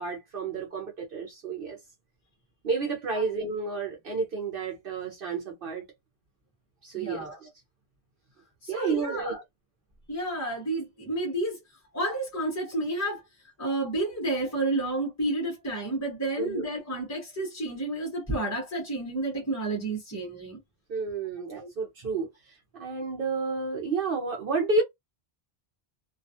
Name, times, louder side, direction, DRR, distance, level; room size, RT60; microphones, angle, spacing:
voice 1, 0.0-1.8 2.6-5.9 6.8-7.5 8.7-9.4 16.4-16.7 20.9-24.8, right 4 dB, 65° right, 0.8 m, -31 dB
voice 2, 6.9-7.4 8.6-9.4 10.1-13.2 13.6-20.6 21.5-21.7, right 2 dB, 20° left, 0.7 m, -31 dB
2.3 x 2.2 x 2.6 m
omnidirectional pair, 1.1 m